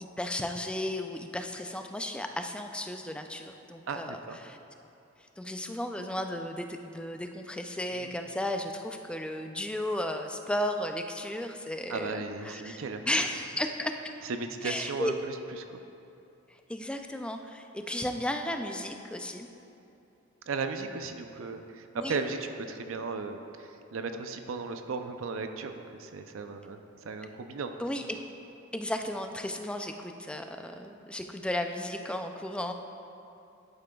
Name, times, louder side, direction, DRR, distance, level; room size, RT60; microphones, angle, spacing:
voice 1, 0.2-4.6 5.4-14.1 14.6-15.1 16.7-19.5 22.0-22.2 27.8-28.2 28.7-32.7, left 1 dB, 5° left, 5 dB, 0.3 m, -34 dB
voice 2, 3.9-4.4 8.0-8.1 11.9-13.0 14.2-15.8 20.5-27.7, right 4 dB, 80° right, 7 dB, 0.5 m, -36 dB
11.0 x 8.8 x 2.3 m, 2.7 s
head